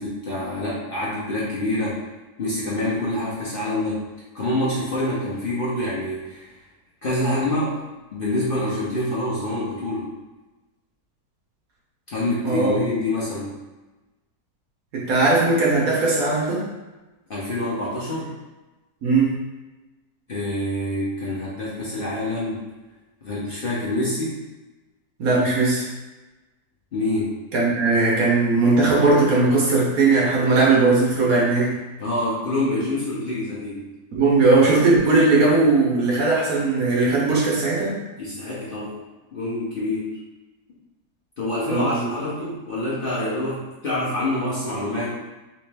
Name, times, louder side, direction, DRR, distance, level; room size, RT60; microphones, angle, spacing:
voice 1, 0.0-2.0 2.4-4.0 4.3-6.5 7.0-7.8 8.1-10.1 12.1-13.6 17.3-18.3 20.3-22.6 23.2-24.4 26.9-27.3 32.0-33.9 38.2-39.0 39.3-40.1 41.4-45.1, left 1 dB, 55° left, -8 dB, 0.6 m, -26 dB
voice 2, 12.4-12.8 14.9-16.7 19.0-19.4 25.2-25.9 27.5-31.7 34.1-38.0 41.7-42.0, right 3 dB, 60° right, -4 dB, 1.1 m, -18 dB
3.3 x 3.1 x 3.3 m, 1.1 s
omnidirectional pair, 1.9 m